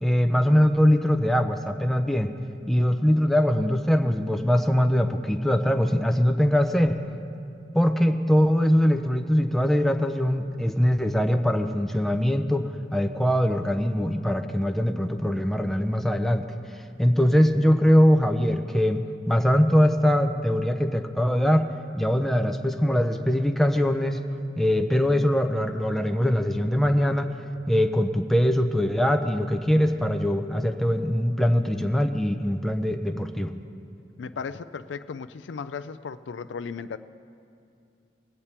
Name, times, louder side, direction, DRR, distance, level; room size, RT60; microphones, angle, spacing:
voice 1, 0.0-2.3 2.7-7.0 7.7-16.4 17.0-19.0 19.3-21.7 22.0-24.2 24.6-27.3 27.7-33.5, equal, ahead, 5 dB, 0.5 m, -22 dB
voice 2, 34.2-37.0, left 5 dB, 90° left, 13 dB, 0.4 m, -35 dB
21.0 x 8.5 x 4.4 m, 2.5 s
head